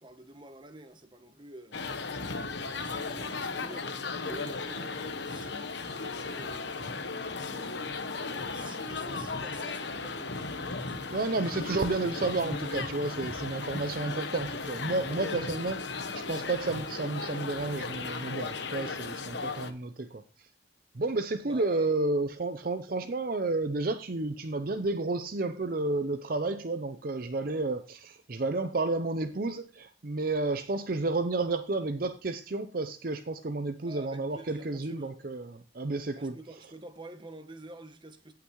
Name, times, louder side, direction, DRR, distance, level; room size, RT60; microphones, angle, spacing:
voice 1, 0.0-2.1 2.6-7.1 8.5-11.2 15.1-15.9 16.2-16.5 21.4-21.9 33.8-35.1 36.1-38.3, right 1 dB, 25° right, 1.0 m, -48 dB
sound 1, 1.7-19.7, left 4 dB, 65° left, 1.1 m, -36 dB
voice 2, 11.1-15.8 16.1-20.2 20.9-36.3, right 3 dB, 50° right, 0.6 m, -31 dB
16.5 x 5.9 x 3.1 m
head